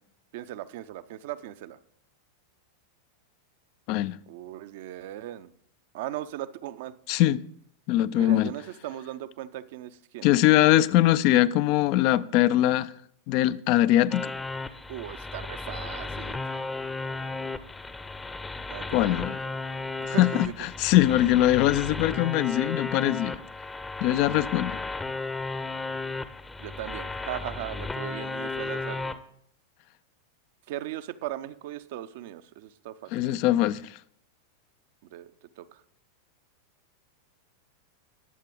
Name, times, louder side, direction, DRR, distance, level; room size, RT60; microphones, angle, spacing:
voice 1, 0.3-1.8 4.3-5.5 5.9-6.9 8.1-10.3 14.9-16.7 18.7-19.4 20.0-20.5 26.6-29.2 30.7-33.1 35.1-35.8, right 13 dB, 50° right, 0.6 m, -38 dB
voice 2, 7.1-7.4 7.9-8.5 10.2-12.9 13.3-14.3 18.9-19.4 20.1-23.4 24.0-24.8 33.1-34.0, left 14 dB, 45° left, 0.4 m, -22 dB
sound 1, 14.1-29.1, left 3 dB, 10° left, 0.7 m, -34 dB
20.5 x 7.3 x 3.8 m
figure-of-eight pair, 90°, 0 cm